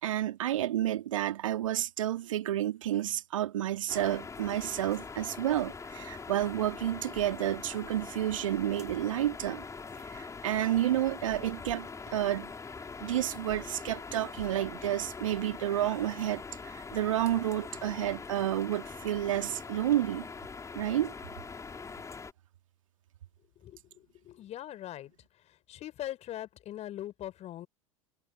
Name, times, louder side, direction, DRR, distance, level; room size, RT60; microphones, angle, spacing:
voice 1, 0.0-9.6 10.1-12.5 13.0-20.3 20.8-21.1, right 12 dB, 70° right, 2.1 m, -30 dB
sound 1, 3.9-22.3, left 4 dB, 15° left, 4.9 m, -43 dB
voice 2, 23.6-25.1 25.4-27.7, left 13 dB, 40° left, 4.9 m, -41 dB
figure-of-eight pair, 80°, 18 cm